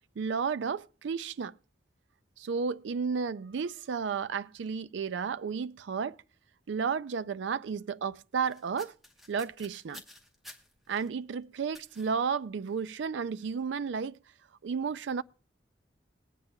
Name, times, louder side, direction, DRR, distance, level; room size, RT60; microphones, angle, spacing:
voice 1, 0.2-1.6 2.4-6.2 6.7-8.9 9.3-10.0 10.9-14.2 14.6-15.2, right 6 dB, 80° right, 0.4 m, -32 dB
sound 1, 8.5-11.1 11.7-12.1 12.7-12.9 13.3-13.5, left 1 dB, ahead, 0.9 m, -52 dB
21.5 x 8.8 x 2.2 m
head